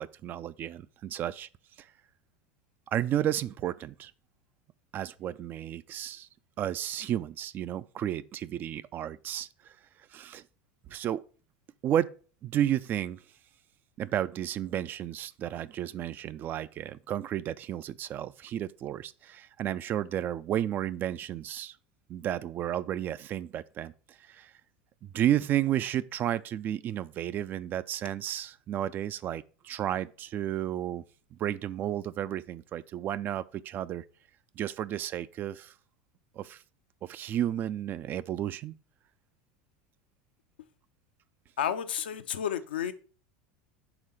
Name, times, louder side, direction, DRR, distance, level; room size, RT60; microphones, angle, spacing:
voice 1, 0.0-1.5 1.8-1.9 2.9-4.1 4.9-6.3 6.6-9.8 10.1-10.4 10.9-11.2 11.8-12.1 12.4-13.2 14.0-21.8 22.1-24.5 25.0-31.0 31.3-34.0 34.6-35.7 36.4-36.6 37.0-38.7, right 11 dB, 40° right, 0.3 m, -32 dB
voice 2, 41.6-42.9, left 9 dB, 80° left, 0.6 m, -31 dB
4.9 x 3.6 x 5.5 m
hypercardioid pair, 90°, 5 cm